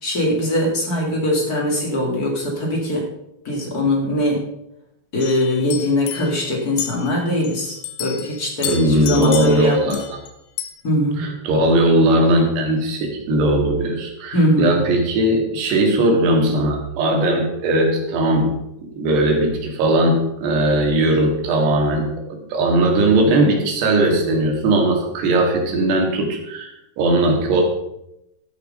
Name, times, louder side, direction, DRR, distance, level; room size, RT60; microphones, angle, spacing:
voice 1, 0.0-3.1 3.4-4.4 5.1-10.0 10.8-11.2 14.3-14.8, left 1 dB, 40° left, -1 dB, 1.4 m, -21 dB
sound 1, 5.2-7.6 7.8-10.3 10.6-10.7, left 11 dB, 80° left, 3.0 m, -31 dB
voice 2, 8.6-10.2 11.1-18.5 19.0-27.6, right 1 dB, 65° right, 1 dB, 3.9 m, -18 dB
14.0 x 6.3 x 5.4 m, 0.84 s
omnidirectional pair, 5.4 m